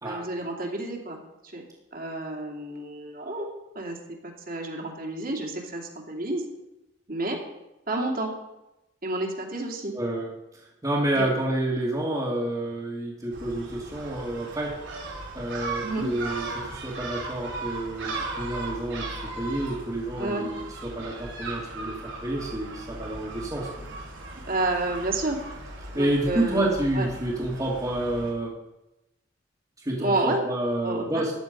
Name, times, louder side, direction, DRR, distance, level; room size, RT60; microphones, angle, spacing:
voice 1, 0.0-1.2 1.4-1.6 1.9-3.5 3.7-6.4 7.1-7.4 7.9-8.3 9.0-9.9 11.1-11.3 15.8-16.1 20.2-20.4 24.5-25.4 25.9-27.1 30.0-30.4 30.8-31.2, right 2 dB, 50° right, 0 dB, 2.6 m, -30 dB
voice 2, 9.9-10.3 10.8-14.8 15.3-23.9 25.9-28.6 29.8-31.3, right 1 dB, 20° right, -7 dB, 2.2 m, -29 dB
Gull seagull, 13.3-28.3, right 2 dB, 75° right, 3.9 m, -37 dB
15.0 x 10.5 x 5.3 m, 0.95 s
head